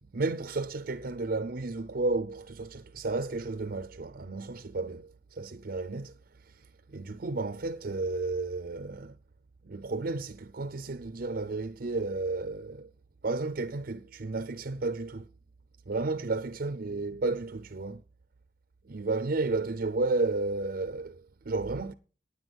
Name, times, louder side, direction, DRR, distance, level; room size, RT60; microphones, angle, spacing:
voice 1, 0.1-6.2 6.4-9.2 9.6-12.9 13.2-15.3 15.9-18.0 18.9-21.9, right 3 dB, 55° right, 0.6 m, -32 dB
9.7 x 9.6 x 6.2 m
head